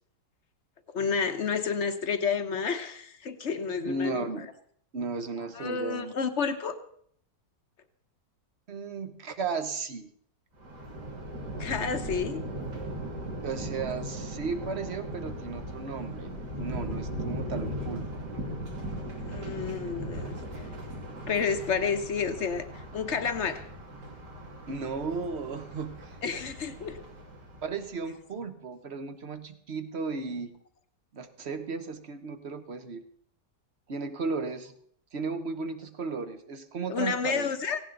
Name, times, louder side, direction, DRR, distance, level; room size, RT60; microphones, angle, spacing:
voice 1, 0.9-4.4 5.6-6.7 11.6-12.4 19.2-20.4 21.2-23.7 26.2-27.0 36.9-37.8, left 5 dB, 45° left, 8 dB, 1.2 m, -30 dB
voice 2, 3.8-4.5 4.9-6.1 8.7-10.1 13.4-18.2 24.7-26.2 27.6-30.5 31.1-33.1 33.9-34.7 35.1-37.5, right 4 dB, 40° right, 10 dB, 1.1 m, -35 dB
Thunder, 10.6-28.0, right 1 dB, 65° right, 2.9 m, -38 dB
17.0 x 16.5 x 3.9 m, 0.63 s
omnidirectional pair, 1.9 m